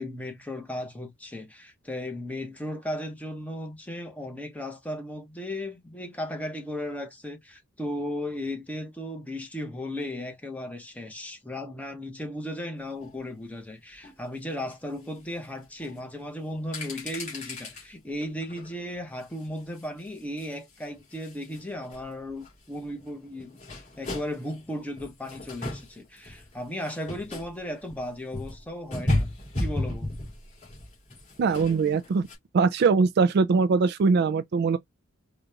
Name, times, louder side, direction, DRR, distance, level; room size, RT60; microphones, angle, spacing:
voice 1, 0.0-29.3 29.6-30.3, left 1 dB, 5° left, 1.0 m, -36 dB
sound 1, 13.0-13.2 14.0-14.1 14.6-14.7 15.4-15.5 15.8-16.0 16.5-17.9 18.2-18.7 19.2-21.6 21.9-32.3, left 1 dB, 35° left, 2.5 m, -35 dB
voice 2, 31.4-32.3 32.5-34.8, right 4 dB, 50° right, 0.3 m, -22 dB
5.1 x 2.4 x 2.8 m
head